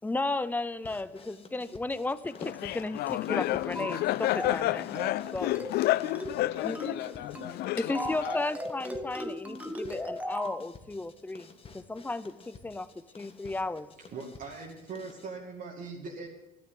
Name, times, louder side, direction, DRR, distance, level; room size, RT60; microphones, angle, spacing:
voice 1, 0.0-5.0 5.3-5.5 6.6-6.9 7.8-12.9 13.2-13.9, left 2 dB, 10° left, 15 dB, 0.7 m, -34 dB
sound 1, 0.8-15.3, left 4 dB, 35° left, 1.5 m, -53 dB
Laughter, 2.4-8.3, left 16 dB, 70° left, 0.4 m, -30 dB
sound 2, 3.8-4.0 4.4-4.6 5.0-5.2 5.6-5.8 6.2-6.4 6.8-7.0 7.4-7.6 8.0-10.6, equal, 10° right, 1.2 m, -37 dB
voice 2, 6.2-8.6, left 11 dB, 85° left, 11 dB, 0.9 m, -40 dB
voice 3, 14.0-16.3, right 4 dB, 55° right, -3 dB, 2.5 m, -41 dB
12.5 x 9.6 x 8.4 m, 0.99 s
cardioid pair, 110°, 17 cm